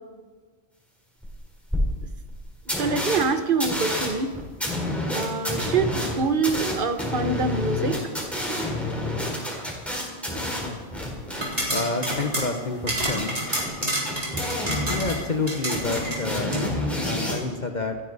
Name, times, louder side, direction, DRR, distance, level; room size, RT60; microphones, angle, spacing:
sound 1, 1.2-1.3 1.7-1.8 2.3-2.4 2.7-3.2 3.6-11.7 12.0-12.1 12.8-15.4 15.7-17.4, left 1 dB, ahead, 4.3 m, -29 dB
voice 1, 2.8-4.3 5.1-8.0, right 4 dB, 50° right, 9 dB, 1.1 m, -25 dB
sound 2, 11.3-16.6, right 1 dB, 30° right, 3.9 m, -30 dB
voice 2, 11.7-13.4 14.9-18.0, left 3 dB, 40° left, 4 dB, 1.1 m, -29 dB
28.0 x 10.0 x 4.1 m, 1.4 s
omnidirectional pair, 1.3 m